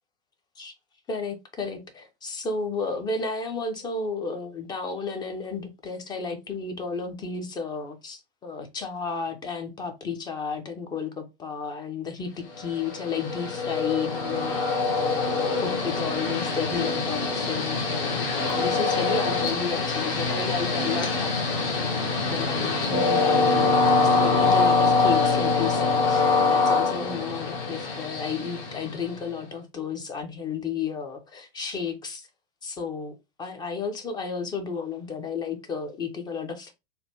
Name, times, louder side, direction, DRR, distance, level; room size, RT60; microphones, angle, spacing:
voice 1, 1.1-14.5 15.0-21.4 22.0-32.3 32.6-36.7, left 5 dB, 15° left, 0.3 m, -33 dB
Train, 12.6-29.3, left 4 dB, 65° left, 1.0 m, -24 dB
3.2 x 2.1 x 2.8 m
hypercardioid pair, 105°, 31 cm